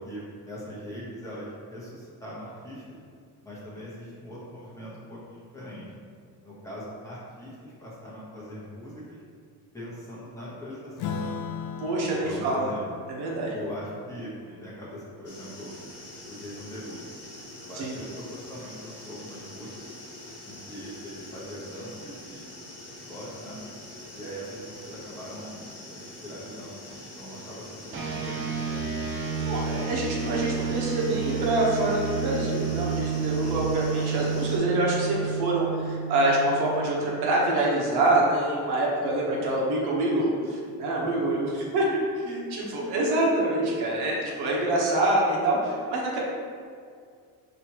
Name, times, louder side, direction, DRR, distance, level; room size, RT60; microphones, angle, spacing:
voice 1, 0.0-3.0 3.4-5.9 6.4-9.2 9.7-11.4 12.0-12.8 13.5-15.7 16.3-17.1 17.6-20.0 20.4-23.6 24.1-26.9 27.2-28.9 29.8-30.1 39.3-39.4 41.0-41.3 41.8-43.1, equal, 10° left, -9 dB, 1.0 m, -41 dB
Acoustic guitar / Strum, 11.0-15.8, left 6 dB, 65° left, 0.5 m, -38 dB
voice 2, 11.8-12.7 13.1-13.6 17.7-18.0 29.4-41.8 42.3-46.2, right 2 dB, 80° right, -3 dB, 1.1 m, -26 dB
sound 1, 15.2-34.6, left 1 dB, 40° left, 1.1 m, -44 dB
sound 2, 27.9-37.7, right 5 dB, 35° right, 0.5 m, -30 dB
5.9 x 3.0 x 2.9 m, 2.2 s
cardioid pair, 160°, 38 cm